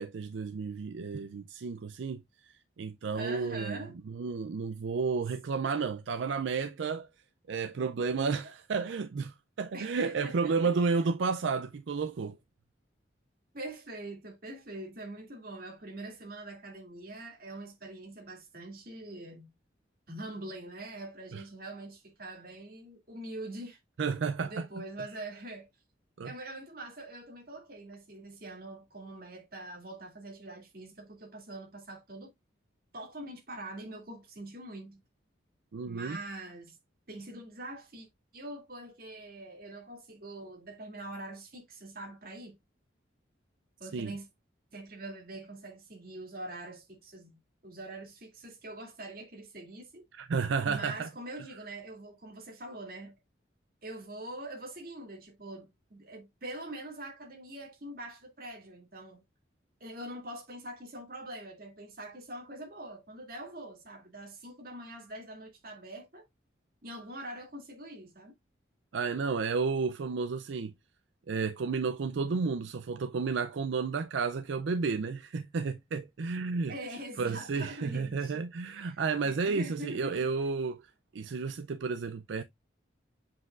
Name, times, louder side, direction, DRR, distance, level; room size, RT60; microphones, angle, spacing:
voice 1, 0.0-2.5 2.8-3.8 4.1-7.1 7.5-12.4 21.3-21.4 24.0-24.7 26.2-26.3 35.7-36.2 43.9-44.1 50.1-51.1 68.9-70.7 71.3-76.7 77.2-80.8 81.1-82.4, right 4 dB, 75° right, 0.4 m, -32 dB
voice 2, 3.1-3.9 9.7-10.5 13.5-19.5 20.1-23.8 24.4-25.7 26.2-32.3 32.9-35.0 35.8-36.8 37.1-38.1 38.3-42.6 43.8-44.3 44.7-50.1 50.7-53.2 53.8-59.2 59.8-66.2 66.8-68.3 76.7-78.3 78.7-80.3, right 1 dB, 50° right, 2.5 m, -44 dB
7.5 x 5.9 x 2.4 m
head